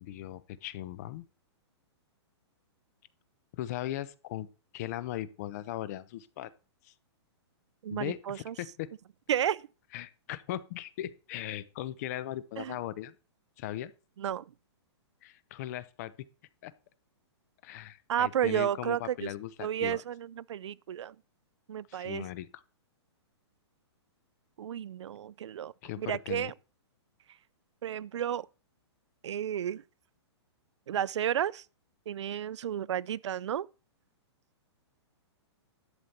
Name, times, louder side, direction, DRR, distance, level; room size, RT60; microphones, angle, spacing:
voice 1, 0.0-1.2 3.5-4.5 4.7-6.5 6.8-6.9 7.9-8.9 9.9-13.1 13.6-13.9 15.2-16.1 16.6-16.7 17.6-20.0 21.9-22.5 25.8-26.5, left 13 dB, 35° left, 0.7 m, -38 dB
voice 2, 7.8-8.5 9.3-9.7 12.6-12.8 14.2-14.4 18.1-19.3 19.6-21.2 21.7-22.3 24.6-26.5 27.8-28.5 29.2-29.8 30.9-31.6 32.1-33.7, right 10 dB, 85° right, 0.5 m, -32 dB
11.5 x 6.9 x 4.3 m
hypercardioid pair, 160°, 15 cm